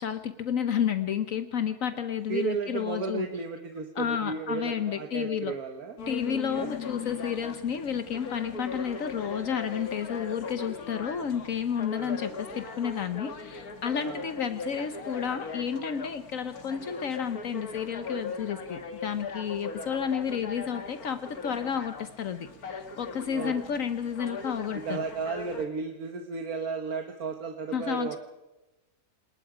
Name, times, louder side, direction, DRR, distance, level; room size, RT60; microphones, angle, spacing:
voice 1, 0.0-3.3 4.0-5.5 6.1-25.0 27.7-28.2, left 8 dB, 70° left, 10 dB, 1.3 m, -31 dB
voice 2, 2.3-6.0 6.2-6.7 11.9-12.2 14.0-14.2 23.3-23.5 24.7-28.2, right 5 dB, 90° right, 5 dB, 1.8 m, -34 dB
sound 1, 6.0-25.6, left 4 dB, 85° left, 2.2 m, -39 dB
28.0 x 20.0 x 5.0 m, 1.0 s
omnidirectional pair, 1.5 m